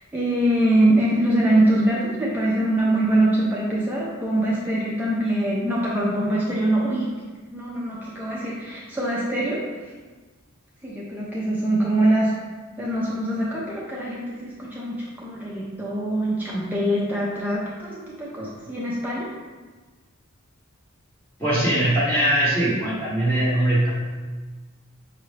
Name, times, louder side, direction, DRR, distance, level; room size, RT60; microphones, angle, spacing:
voice 1, 0.0-7.1 7.5-9.6 10.8-12.3 12.8-19.3, right 1 dB, 10° right, -6 dB, 0.5 m, -23 dB
voice 2, 21.4-23.9, right 1 dB, 10° left, -10 dB, 0.9 m, -21 dB
5.4 x 2.6 x 3.2 m, 1.3 s
head